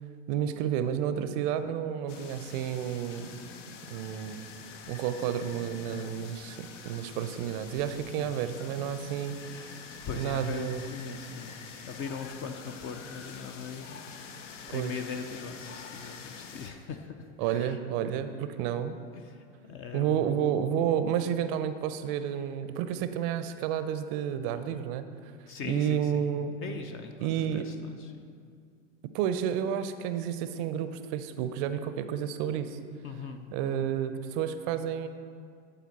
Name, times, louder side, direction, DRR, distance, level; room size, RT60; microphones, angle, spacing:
voice 1, 0.3-3.3 3.9-4.5 4.9-9.7 10.2-10.9 14.7-14.9 17.4-19.0 19.9-25.1 25.7-26.5 27.2-27.7 29.1-32.8 33.5-35.1, right 9 dB, 45° right, 10 dB, 0.5 m, -31 dB
sound 1, 2.1-16.7, left 6 dB, 65° left, 0.7 m, -46 dB
voice 2, 5.9-6.3 8.2-8.6 9.1-14.0 14.7-17.8 19.1-20.8 25.5-26.3 26.6-28.2 33.0-34.0, left 6 dB, 35° left, 7 dB, 0.5 m, -41 dB
11.5 x 4.1 x 4.1 m, 2.2 s
hypercardioid pair, 90°, 39 cm